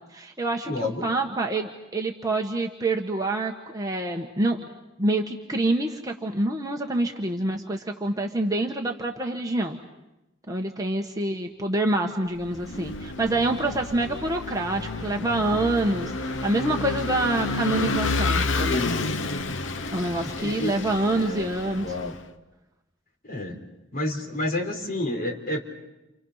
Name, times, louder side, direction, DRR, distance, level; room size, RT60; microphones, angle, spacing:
voice 1, 0.1-4.6 5.0-9.8 10.5-18.9 19.9-21.9, right 2 dB, 20° right, 1 dB, 1.4 m, -26 dB
voice 2, 0.7-1.1 20.2-20.7 21.1-21.5 21.8-22.1 23.2-23.6 23.9-25.6, left 1 dB, 50° left, 1 dB, 4.0 m, -29 dB
Vehicle / Engine, 12.4-22.2, left 3 dB, 75° left, 1.0 m, -30 dB
30.0 x 28.0 x 5.8 m, 0.97 s
head